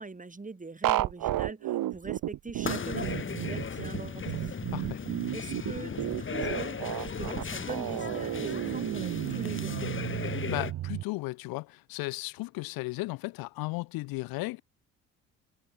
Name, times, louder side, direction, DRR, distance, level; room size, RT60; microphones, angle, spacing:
voice 1, 0.0-4.6 5.3-9.8, right 3 dB, 20° right, 5.8 m, -42 dB
sound 1, 0.8-11.0, right 14 dB, 60° right, 2.0 m, -32 dB
sound 2, 2.6-10.7, left 6 dB, 30° left, 2.7 m, -36 dB
voice 2, 4.7-5.0 10.3-14.6, left 23 dB, 65° left, 0.7 m, -35 dB
hypercardioid pair, 60°, 38 cm